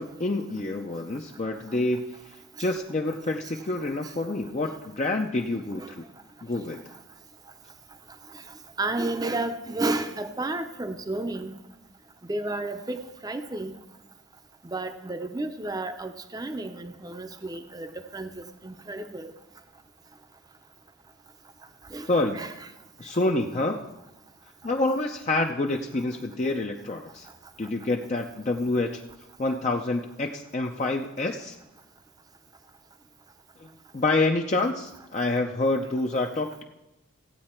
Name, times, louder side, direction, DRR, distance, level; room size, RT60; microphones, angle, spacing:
voice 1, 0.0-6.0 6.4-6.8 22.1-22.4 23.0-23.9 24.6-27.3 27.6-28.9 29.4-31.6 33.6-33.7 33.9-36.5, left 2 dB, 35° left, 2 dB, 0.5 m, -27 dB
voice 2, 8.8-11.5 12.3-13.7 14.7-18.3 18.6-19.3 21.9-22.1 22.3-22.5, right 2 dB, 20° right, 8 dB, 0.6 m, -31 dB
15.5 x 8.6 x 4.4 m, 0.99 s
head